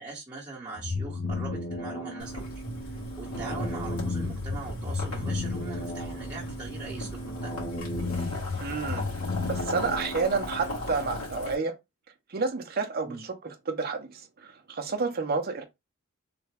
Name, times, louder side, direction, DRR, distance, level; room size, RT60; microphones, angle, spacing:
voice 1, 0.0-2.4 3.2-7.5 13.0-13.2, right 3 dB, 20° right, 1.1 m, -41 dB
sound 1, 0.8-10.7, left 3 dB, 55° left, 0.8 m, -34 dB
Boiling, 2.2-11.5, equal, 80° left, 1.6 m, -37 dB
voice 2, 8.6-9.1 9.4-11.7 12.3-13.3 13.7-15.6, right 4 dB, 45° right, 0.7 m, -30 dB
3.4 x 2.2 x 3.3 m
head